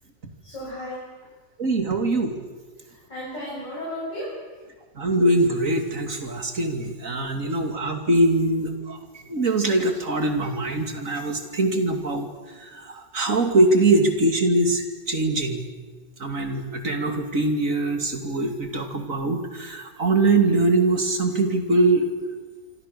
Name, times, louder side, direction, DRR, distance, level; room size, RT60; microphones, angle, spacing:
voice 1, 0.4-1.0 2.8-4.6, equal, 75° left, -7 dB, 8.5 m, -34 dB
voice 2, 1.6-2.3 5.0-9.0 9.3-12.3 12.6-15.6 16.2-22.3, right 2 dB, 45° right, 5 dB, 2.9 m, -22 dB
26.0 x 25.5 x 6.8 m, 1.3 s
omnidirectional pair, 1.9 m